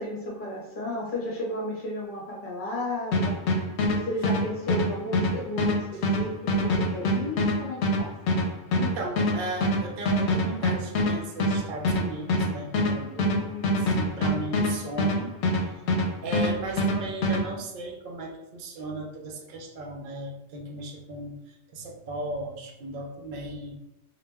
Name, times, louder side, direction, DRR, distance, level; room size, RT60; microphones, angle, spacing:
voice 1, 0.0-3.4 3.9-8.2 13.1-14.0, left 1 dB, 50° left, -3 dB, 0.9 m, -33 dB
sound 1, 3.1-16.1 16.3-17.4, left 1 dB, 80° left, 0.9 m, -24 dB
voice 2, 8.7-13.4 13.7-15.8 16.2-23.7, right 2 dB, 60° right, 1 dB, 0.6 m, -36 dB
2.2 x 2.1 x 3.3 m, 0.89 s
omnidirectional pair, 1.1 m